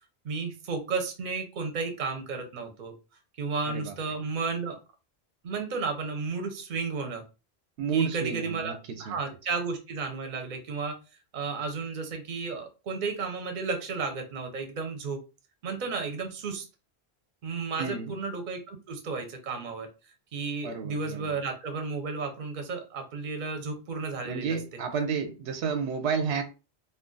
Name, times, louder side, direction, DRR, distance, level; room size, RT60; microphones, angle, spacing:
voice 1, 0.2-2.9 3.4-4.8 5.4-7.2 7.9-8.7 9.0-11.0 11.3-15.2 15.6-16.6 17.4-19.9 20.3-24.6, right 4 dB, 50° right, 0.7 m, -33 dB
voice 2, 7.8-9.2 17.8-18.2 20.6-21.4 24.2-26.4, right 5 dB, 80° right, 0.8 m, -31 dB
2.4 x 2.2 x 3.7 m
omnidirectional pair, 1.1 m